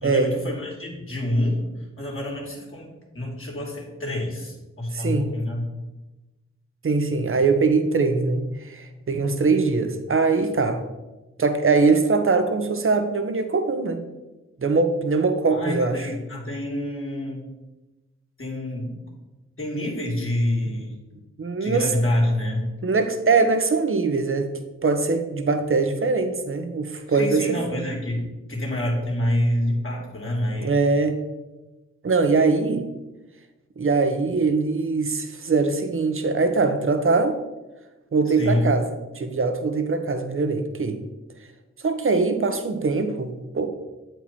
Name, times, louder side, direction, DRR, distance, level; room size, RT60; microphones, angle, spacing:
voice 1, 0.0-1.6 2.0-5.6 15.5-17.5 18.4-18.9 19.6-21.0 21.6-22.7 27.1-30.8 38.4-38.7, left 1 dB, 45° left, -2 dB, 2.5 m, -27 dB
voice 2, 4.9-5.3 6.8-10.8 11.4-14.0 14.6-16.0 21.4-21.9 22.8-27.6 30.6-31.2 32.0-32.9 33.8-37.4 38.1-38.9 39.1-41.0 41.8-43.7, right 4 dB, 45° right, 8 dB, 1.0 m, -22 dB
7.9 x 4.6 x 4.3 m, 1.1 s
cardioid pair, 50°, 29 cm